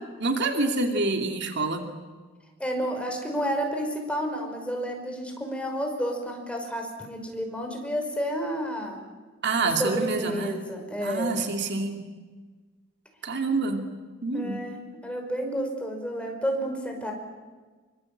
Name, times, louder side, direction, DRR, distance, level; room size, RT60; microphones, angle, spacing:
voice 1, 0.0-1.9 9.4-10.6 11.0-12.0 13.2-13.9 14.2-14.6, right 3 dB, 55° right, 5 dB, 2.5 m, -27 dB
voice 2, 2.6-9.0 9.8-11.3 14.3-17.1, equal, 5° left, 2 dB, 5.4 m, -30 dB
26.0 x 24.5 x 8.6 m, 1.4 s
head